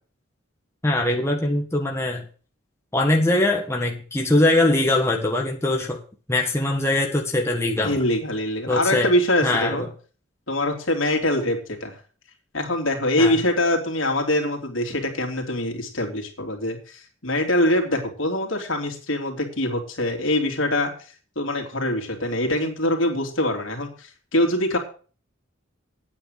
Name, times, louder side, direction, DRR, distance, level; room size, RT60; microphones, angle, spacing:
voice 1, 0.8-2.3 2.9-6.0 6.3-8.0 8.7-9.1 9.4-9.9 13.2-13.4, left 2 dB, 15° left, 1 dB, 1.6 m, -22 dB
voice 2, 7.8-9.9 10.5-12.0 12.5-20.9 21.3-24.8, left 1 dB, 75° left, 3 dB, 3.1 m, -24 dB
9.3 x 9.0 x 6.6 m, 0.40 s
head